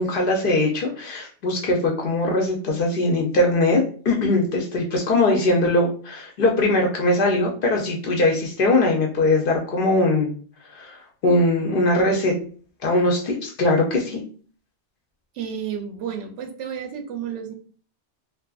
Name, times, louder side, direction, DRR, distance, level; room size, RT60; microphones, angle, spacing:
voice 1, 0.0-10.3 10.7-11.0 11.2-12.3 12.8-14.2, left 2 dB, 60° left, 0 dB, 0.6 m, -21 dB
voice 2, 15.3-17.5, right 8 dB, 80° right, 5 dB, 0.9 m, -31 dB
2.5 x 2.5 x 2.3 m, 0.43 s
omnidirectional pair, 1.2 m